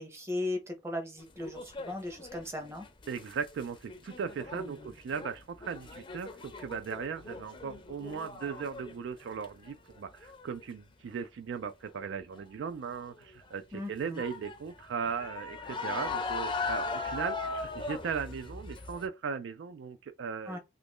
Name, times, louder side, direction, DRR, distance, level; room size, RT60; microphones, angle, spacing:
voice 1, 0.0-2.9 4.5-4.9 13.7-14.2 20.5-20.6, left 1 dB, 15° right, 0.7 m, -37 dB
sound 1, 1.2-3.6 3.9-9.0 9.2-9.7 10.1-10.6 12.4-12.7 13.1-13.2 14.2-19.1, left 3 dB, 25° left, 0.5 m, -39 dB
voice 2, 3.1-20.6, right 6 dB, 70° right, 0.3 m, -38 dB
3.0 x 2.5 x 3.5 m
head